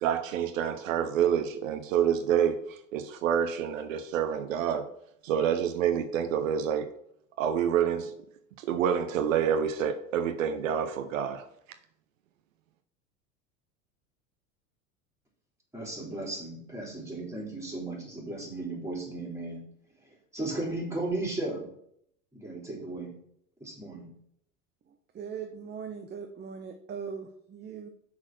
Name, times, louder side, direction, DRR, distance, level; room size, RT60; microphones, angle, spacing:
voice 1, 0.0-4.9 5.2-6.9 7.4-8.1 8.6-11.4, right 8 dB, 80° right, 9 dB, 0.8 m, -27 dB
voice 2, 15.7-19.6 20.3-21.7 22.3-23.1 23.6-24.1, right 2 dB, 5° right, -3 dB, 3.4 m, -35 dB
voice 3, 24.9-27.9, right 6 dB, 25° right, 5 dB, 0.8 m, -40 dB
6.2 x 4.4 x 6.0 m, 0.69 s
hypercardioid pair, 85°, 39 cm